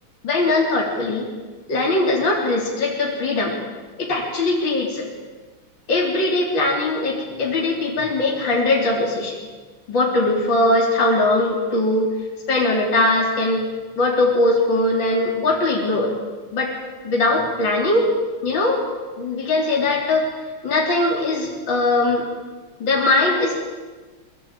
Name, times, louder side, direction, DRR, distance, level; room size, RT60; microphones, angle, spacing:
voice 1, 0.2-1.2 1.7-3.5 4.0-5.0 5.9-9.4 9.9-12.1 12.5-13.6 14.0-16.1 16.5-16.7 17.0-18.1 18.4-18.8 19.2-20.3 20.6-22.2 22.8-23.5, left 2 dB, 60° left, -2 dB, 4.3 m, -20 dB
24.5 x 22.5 x 9.0 m, 1.4 s
omnidirectional pair, 2.4 m